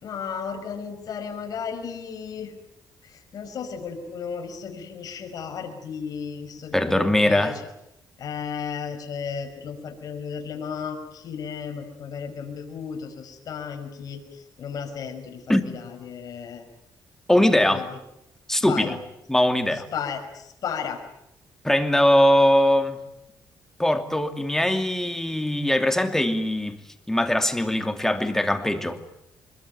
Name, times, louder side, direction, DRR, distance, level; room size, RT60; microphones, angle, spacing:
voice 1, 0.0-2.5 3.0-7.7 8.2-16.7 17.3-18.0 18.6-19.0 19.7-21.0, left 6 dB, 60° left, 4 dB, 5.6 m, -34 dB
voice 2, 6.7-7.6 15.5-15.6 17.3-17.8 18.5-19.0 19.3-19.9 21.6-23.0 23.8-26.8 27.1-29.0, left 1 dB, 5° left, 6 dB, 2.6 m, -21 dB
24.5 x 22.0 x 9.3 m, 0.83 s
cardioid pair, 110°, 7 cm